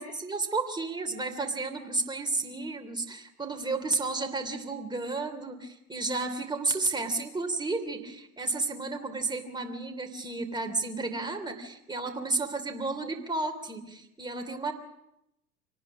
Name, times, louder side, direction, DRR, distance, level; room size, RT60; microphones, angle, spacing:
voice 1, 0.0-14.7, right 3 dB, 10° right, 4 dB, 3.1 m, -32 dB
25.0 x 18.5 x 6.2 m, 0.85 s
hypercardioid pair, 80°, 45 cm